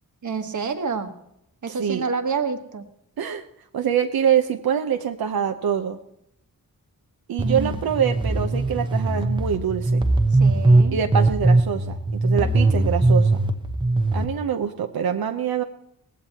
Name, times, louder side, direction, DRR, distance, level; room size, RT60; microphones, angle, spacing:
voice 1, 0.2-1.1 1.6-2.8 7.4-7.8 10.4-11.0, right 5 dB, 55° right, 7 dB, 1.3 m, -28 dB
voice 2, 1.7-2.0 3.2-3.4 3.7-6.0 7.3-10.1 10.9-12.0 12.2-13.4 14.1-15.6, right 8 dB, 85° right, 5 dB, 0.8 m, -24 dB
sound 1, 7.4-14.2, right 2 dB, 15° right, 0.9 m, -20 dB
18.5 x 16.0 x 2.9 m, 0.79 s
wide cardioid pair, 105°, 36 cm